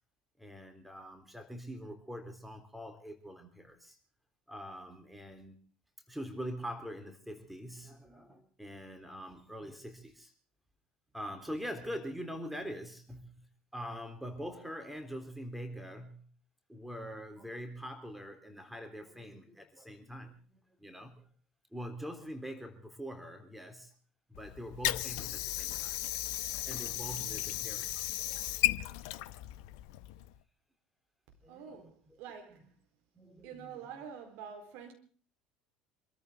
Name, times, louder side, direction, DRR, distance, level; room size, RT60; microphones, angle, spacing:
voice 1, 0.4-4.0 4.5-5.6 6.1-10.3 11.1-13.5 13.7-16.3 16.7-21.3 21.7-23.9 24.3-26.0 26.7-29.0 31.4-32.2 33.2-33.8, equal, 5° right, 3.7 m, -44 dB
Water / Sink (filling or washing), 24.3-30.4, left 14 dB, 60° left, 0.8 m, -35 dB
voice 2, 31.5-32.7 33.4-34.9, right 7 dB, 55° right, 4.3 m, -47 dB
27.0 x 14.0 x 3.8 m
figure-of-eight pair, 65°, 3 cm